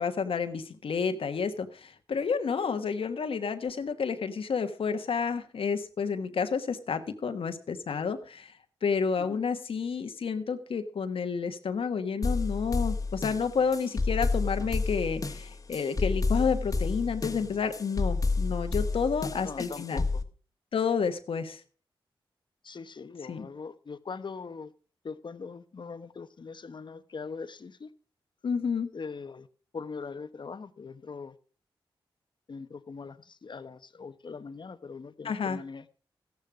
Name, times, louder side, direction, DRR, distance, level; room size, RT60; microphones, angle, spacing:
voice 1, 0.0-8.5 8.8-20.0 20.7-21.6 23.3-23.5 28.4-28.9 35.2-35.6, left 6 dB, 75° left, 7 dB, 1.4 m, -30 dB
sound 1, 12.2-20.2, left 3 dB, 35° left, 1.5 m, -30 dB
voice 2, 19.2-20.2 22.6-24.7 25.0-27.9 28.9-29.5 29.7-31.3 32.5-35.8, left 5 dB, 55° left, 12 dB, 1.1 m, -41 dB
14.0 x 10.5 x 4.9 m, 0.39 s
cardioid pair, 55°, 10 cm